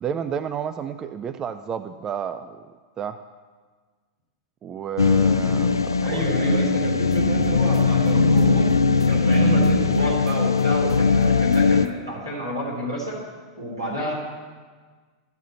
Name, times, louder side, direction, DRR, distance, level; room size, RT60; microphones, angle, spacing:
voice 1, 0.0-2.6 3.0-3.2 4.6-6.3 13.9-14.0, right 8 dB, 25° right, 10 dB, 0.4 m, -31 dB
sound 1, 5.0-11.9, left 4 dB, 80° left, 0.3 m, -19 dB
voice 2, 6.0-8.7 9.1-13.2 13.5-14.1, equal, 85° right, -4 dB, 3.9 m, -29 dB
sound 2, 7.1-9.4 9.6-11.9, left 3 dB, 10° left, 1.6 m, -40 dB
12.5 x 6.4 x 6.8 m, 1.5 s
figure-of-eight pair, 90°, 2 cm